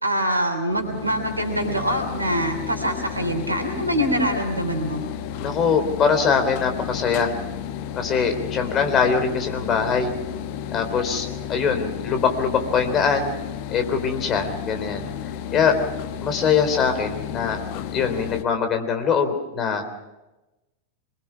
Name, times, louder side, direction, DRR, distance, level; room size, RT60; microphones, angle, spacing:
voice 1, 0.0-5.0, equal, 85° right, 5 dB, 3.2 m, -24 dB
sound 1, 0.7-18.4, left 9 dB, 45° left, 1.1 m, -33 dB
voice 2, 5.4-7.3 8.0-10.1 10.7-13.4 13.7-15.1 15.5-15.7 16.2-17.6 17.9-19.8, left 6 dB, 30° left, 6 dB, 3.6 m, -22 dB
25.5 x 22.0 x 5.9 m, 1.0 s
figure-of-eight pair, 90°, 0 cm